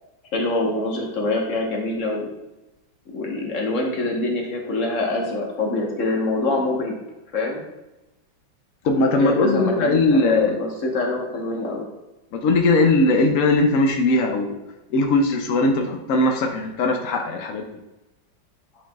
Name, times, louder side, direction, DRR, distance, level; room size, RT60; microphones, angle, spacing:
voice 1, 0.3-2.3 3.1-6.9 7.3-7.6 9.2-11.9, left 2 dB, 45° left, 0 dB, 1.3 m, -25 dB
voice 2, 8.8-10.6 12.3-14.5 14.9-17.7, left 2 dB, 80° left, 4 dB, 0.7 m, -19 dB
8.9 x 4.8 x 2.3 m, 1.0 s
omnidirectional pair, 2.2 m